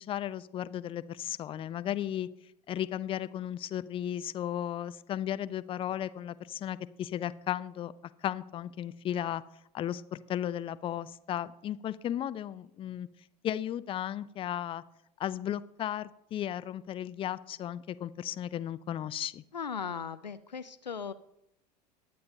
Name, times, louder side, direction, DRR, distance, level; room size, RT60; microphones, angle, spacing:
voice 1, 0.0-2.3 2.7-7.9 8.2-9.4 9.7-13.1 13.4-14.8 15.2-19.4, left 11 dB, 25° left, 15 dB, 0.5 m, -35 dB
voice 2, 19.5-21.1, left 6 dB, 90° left, 14 dB, 0.5 m, -37 dB
21.0 x 8.5 x 2.7 m, 0.79 s
figure-of-eight pair, 80°, 21 cm